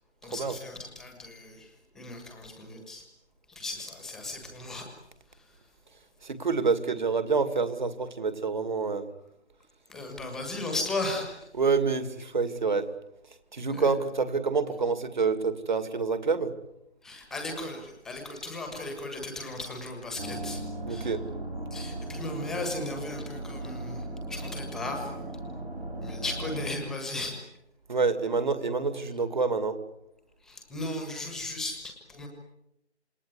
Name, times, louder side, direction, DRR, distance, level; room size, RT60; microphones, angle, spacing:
voice 1, 0.2-3.0 3.5-4.9 5.3-5.5 9.9-11.5 13.7-13.9 17.0-20.6 20.9-21.1 21.7-25.1 26.0-27.4 30.4-32.3, left 2 dB, ahead, 3 dB, 1.5 m, -36 dB
voice 2, 6.2-9.1 11.6-12.9 13.5-16.5 20.9-21.2 27.9-29.8, right 4 dB, 40° right, 11 dB, 2.4 m, -27 dB
sound 1, 20.2-26.8, right 1 dB, 65° right, 6.3 m, -37 dB
28.0 x 20.0 x 9.6 m, 0.85 s
figure-of-eight pair, 155°, 34 cm